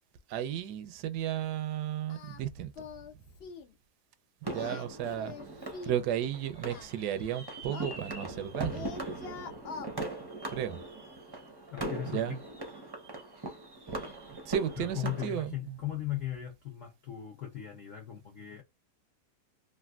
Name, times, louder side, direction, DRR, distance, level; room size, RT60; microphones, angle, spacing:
voice 1, 0.3-2.7 3.1-3.2 4.5-8.9 10.5-10.8 12.1-12.4 14.3-15.8, right 10 dB, 85° right, 1.1 m, -34 dB
Singing, 2.1-2.4 2.7-3.1 3.4-3.7 4.5-6.0 6.7-8.5 8.7-9.9, left 6 dB, 80° left, 0.5 m, -44 dB
sound 1, 4.4-15.3, right 2 dB, 30° right, 0.5 m, -40 dB
voice 2, 11.7-12.4 14.8-18.6, left 12 dB, 60° left, 0.9 m, -38 dB
3.3 x 2.5 x 2.3 m
omnidirectional pair, 1.7 m